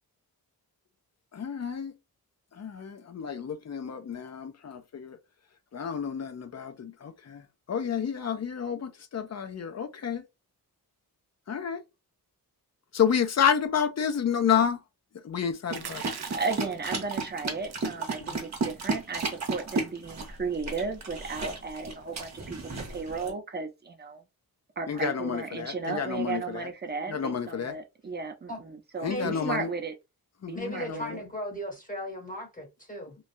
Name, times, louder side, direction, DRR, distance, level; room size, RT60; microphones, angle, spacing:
voice 1, 1.3-1.9 2.6-5.2 5.7-7.4 7.7-10.2 11.5-11.8 12.9-14.8 15.2-16.0 18.3-18.4 24.9-26.7 27.1-27.7 29.0-29.7 30.4-31.2, left 7 dB, 45° left, 0.4 m, -30 dB
sound 1, 15.7-23.3, right 3 dB, 45° right, 1.0 m, -34 dB
sound 2, 15.7-16.9 17.7-17.9 18.3-18.4 18.6-18.9 19.4-19.7, right 7 dB, 80° right, 0.6 m, -42 dB
voice 2, 15.9-19.2 19.5-24.2 24.8-29.9 30.5-31.2, right 4 dB, 25° right, 0.6 m, -35 dB
voice 3, 29.1-29.6 30.5-33.2, equal, 20° left, 0.8 m, -37 dB
3.1 x 2.2 x 2.6 m
wide cardioid pair, 155°, 38 cm